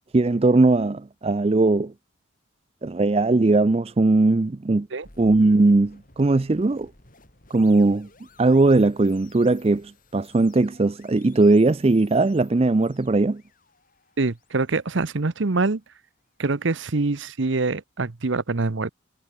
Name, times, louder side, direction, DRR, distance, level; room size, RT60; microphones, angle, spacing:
voice 1, 0.1-1.9 2.8-4.9 5.2-6.9 7.5-8.1 8.4-13.4, right 2 dB, 30° right, 0.4 m, -19 dB
sound 1, 5.0-16.1, left 3 dB, 45° left, 4.3 m, -55 dB
voice 2, 14.2-15.8 16.4-18.9, right 3 dB, 65° right, 0.9 m, -25 dB
head